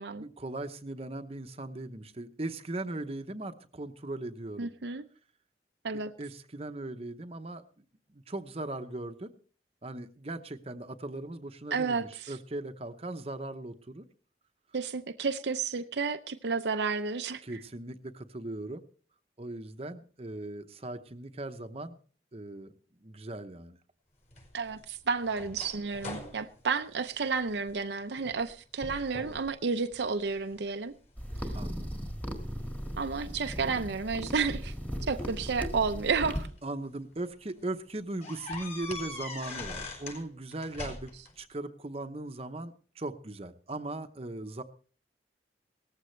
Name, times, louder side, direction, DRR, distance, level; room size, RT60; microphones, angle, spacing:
voice 1, 0.2-4.7 6.2-7.6 8.1-9.3 9.8-14.0 17.4-18.8 19.4-22.0 22.3-22.7 23.0-23.8 31.5-31.9 36.6-41.1 41.4-44.6, right 2 dB, 35° right, 0.8 m, -39 dB
voice 2, 4.6-5.0 5.8-6.1 11.7-12.3 14.7-17.4 24.5-30.9 33.0-34.7 35.1-36.5, right 5 dB, 80° right, 0.6 m, -31 dB
sound 1, 24.3-27.7 28.2-28.5 28.8-29.5 29.9-30.6 31.2-32.7 33.8-34.0 35.2-36.6 37.1-37.3 37.6-37.7 38.2-40.2 40.5-41.3, left 2 dB, 40° left, 5.2 m, -43 dB
sound 2, 31.2-36.5, equal, 10° left, 1.8 m, -37 dB
18.0 x 14.5 x 3.2 m
head